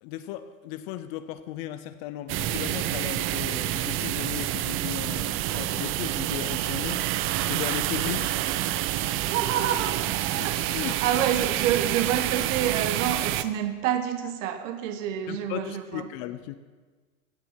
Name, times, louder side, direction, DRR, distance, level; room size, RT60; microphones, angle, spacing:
voice 1, 0.0-7.0 7.5-8.4 10.4-11.0 15.3-16.5, left 13 dB, 45° left, 12 dB, 0.8 m, -36 dB
sound 1, 2.3-13.4, right 14 dB, 30° right, 0.5 m, -28 dB
voice 2, 9.2-10.0 10.4-16.1, right 10 dB, 60° right, 9 dB, 1.3 m, -28 dB
16.0 x 7.0 x 5.8 m, 1.4 s
hypercardioid pair, 105°, 42 cm